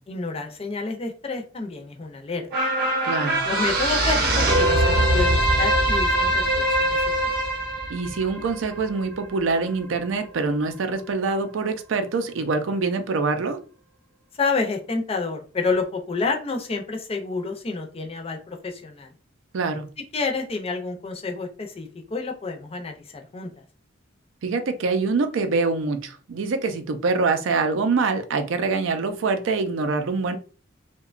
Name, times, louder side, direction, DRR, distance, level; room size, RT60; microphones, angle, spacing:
voice 1, 0.1-2.4 3.4-6.7 7.2-7.3 14.4-19.1 20.1-23.5, left 4 dB, 30° left, 4 dB, 0.5 m, -29 dB
sound 1, 2.5-9.2 9.6-9.7, right 1 dB, 55° right, 0.7 m, -22 dB
voice 2, 3.0-3.4 7.9-13.6 19.5-19.9 24.4-30.4, right 4 dB, 85° right, 8 dB, 0.4 m, -25 dB
2.8 x 2.2 x 2.4 m, 0.37 s
head